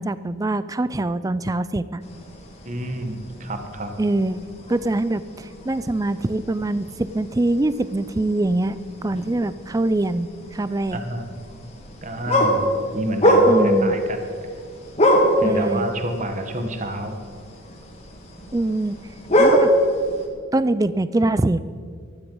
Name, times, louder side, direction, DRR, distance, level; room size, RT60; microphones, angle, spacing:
voice 1, 0.0-2.0 4.0-11.1 13.5-14.0 15.4-15.9 18.5-19.0 19.4-19.7 20.5-21.6, right 2 dB, 15° right, 16 dB, 0.3 m, -23 dB
sound 1, 2.0-20.2, equal, 30° left, 2.1 m, -25 dB
voice 2, 2.6-3.9 10.9-11.3 12.0-12.7 12.9-14.2 15.4-17.2, right 1 dB, 35° right, 6 dB, 1.2 m, -29 dB
15.0 x 13.0 x 5.4 m, 2.1 s
head